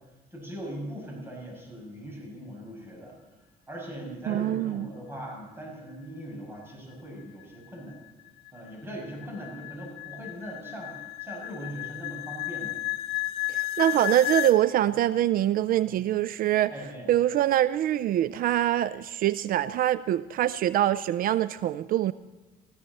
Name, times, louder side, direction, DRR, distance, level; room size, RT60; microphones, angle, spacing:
voice 1, 0.3-3.1 3.7-8.0 8.5-12.8 15.9-16.0 16.7-17.1, right 1 dB, 15° right, -1 dB, 6.4 m, -40 dB
voice 2, 4.3-4.9 13.5-16.7 17.1-22.1, right 12 dB, 60° right, 16 dB, 0.4 m, -24 dB
sound 1, 7.4-14.6, left 19 dB, 85° left, 0.8 m, -33 dB
19.5 x 14.0 x 4.2 m, 1.2 s
cardioid pair, 110°, 17 cm